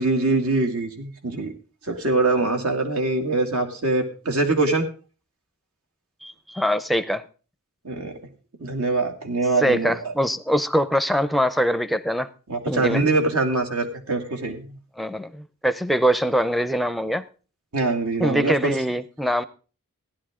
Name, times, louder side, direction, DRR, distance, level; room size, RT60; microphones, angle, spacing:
voice 1, 0.0-1.5 1.9-4.9 7.8-8.1 8.6-9.9 12.5-14.8 17.7-18.7, right 3 dB, 75° right, 4 dB, 2.4 m, -23 dB
voice 2, 6.2-7.2 9.6-12.3 12.7-13.0 15.0-17.2 18.2-19.4, equal, ahead, 12 dB, 0.6 m, -23 dB
15.5 x 11.0 x 3.7 m, 0.36 s
head